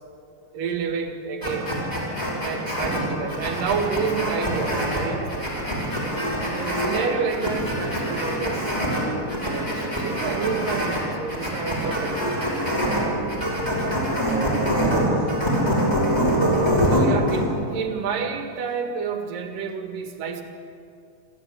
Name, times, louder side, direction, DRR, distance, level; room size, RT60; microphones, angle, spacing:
voice 1, 0.5-1.7 2.4-5.5 6.5-8.8 9.4-12.2 16.8-20.4, right 5 dB, 85° right, 5 dB, 3.5 m, -29 dB
sound 1, 1.4-17.4, equal, 10° left, 5.5 m, -25 dB
voice 2, 14.0-15.4, equal, 30° left, -9 dB, 7.0 m, -45 dB
29.5 x 13.0 x 8.6 m, 2.4 s
omnidirectional pair, 3.7 m